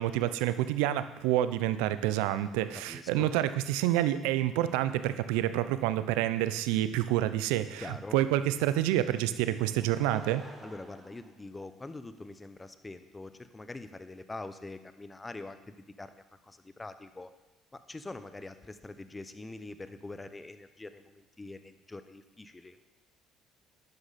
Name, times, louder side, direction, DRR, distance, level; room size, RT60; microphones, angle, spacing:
voice 1, 0.0-10.4, right 13 dB, 80° right, 13 dB, 0.5 m, -28 dB
voice 2, 2.9-3.3 7.8-8.2 10.6-17.3 17.7-22.8, left 2 dB, 20° left, 11 dB, 1.0 m, -44 dB
Laughter / Crowd, 9.6-12.2 12.9-13.0, right 1 dB, 20° right, 3.4 m, -51 dB
12.0 x 9.8 x 4.2 m, 1.1 s
supercardioid pair, 65°, 0 cm